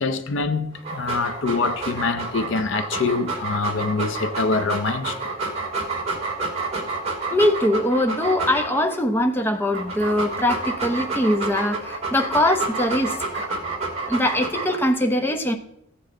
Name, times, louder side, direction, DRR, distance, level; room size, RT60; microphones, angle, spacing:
voice 1, 0.0-5.3, left 4 dB, 65° left, 0.6 m, -25 dB
Dog, 0.7-9.0 9.5-14.9, right 3 dB, 30° right, 2.5 m, -29 dB
voice 2, 7.3-13.5 14.1-15.6, left 1 dB, 10° left, 0.8 m, -22 dB
15.5 x 8.3 x 3.8 m
head